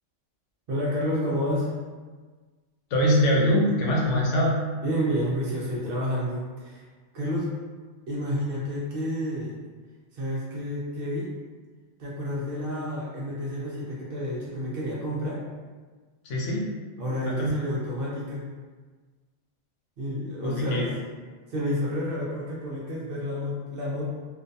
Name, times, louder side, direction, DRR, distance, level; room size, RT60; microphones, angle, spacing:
voice 1, 0.7-1.7 4.8-6.8 7.1-7.5 8.1-9.6 10.1-11.3 12.0-15.4 17.0-18.5 20.0-20.9 21.5-24.1, equal, 60° right, -5 dB, 0.7 m, -29 dB
voice 2, 2.9-4.6 16.2-16.6 17.2-17.5 20.4-20.9, equal, 80° left, -3 dB, 1.0 m, -23 dB
2.5 x 2.1 x 2.6 m, 1.4 s
omnidirectional pair, 1.2 m